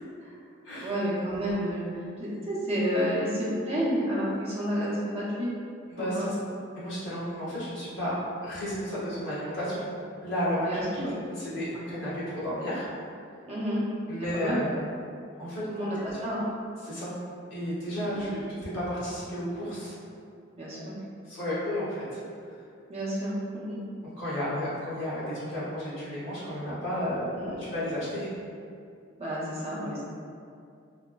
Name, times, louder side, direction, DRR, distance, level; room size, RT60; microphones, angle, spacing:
voice 1, 0.8-5.5 6.0-6.3 10.6-11.1 13.4-13.9 14.1-14.6 15.7-16.4 18.0-18.3 20.6-21.0 22.9-23.8 27.4-27.7 29.2-30.0, equal, 30° right, -7 dB, 0.7 m, -30 dB
voice 2, 5.9-8.1 8.4-9.8 10.2-11.0 11.4-12.8 14.1-14.7 15.4-15.6 16.8-17.1 17.5-19.9 20.8-20.9 21.2-22.0 24.2-28.3, equal, 70° left, -11 dB, 1.4 m, -32 dB
4.8 x 2.1 x 2.2 m, 2.5 s
head